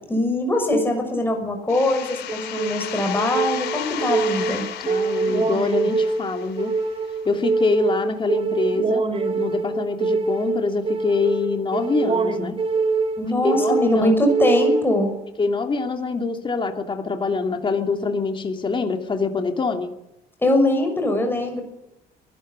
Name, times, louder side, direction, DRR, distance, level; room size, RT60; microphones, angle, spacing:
voice 1, 0.1-4.6 13.2-15.1 20.4-21.6, left 1 dB, 10° left, 3 dB, 6.2 m, -22 dB
sound 1, 1.7-7.2, left 10 dB, 80° left, 3.7 m, -34 dB
sound 2, 2.3-15.3, right 4 dB, 35° right, 3.0 m, -25 dB
voice 2, 4.8-6.7 7.2-9.0 9.4-12.6 13.4-14.1 15.4-19.9, left 4 dB, 30° left, 5 dB, 2.7 m, -25 dB
22.5 x 13.0 x 9.6 m, 0.88 s
cardioid pair, 110°, 17 cm